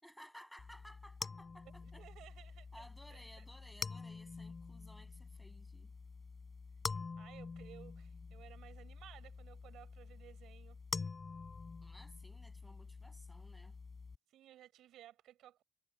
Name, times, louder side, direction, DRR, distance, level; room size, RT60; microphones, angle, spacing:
voice 1, 0.0-2.0 2.7-5.9 11.8-13.8, equal, ahead, 7.5 m, -58 dB
sound 1, 0.6-14.2, left 4 dB, 30° left, 7.5 m, -47 dB
voice 2, 1.6-2.8 3.1-3.4 7.2-10.8 14.3-15.6, right 12 dB, 80° right, 6.7 m, -58 dB
cardioid pair, 90°, 0 cm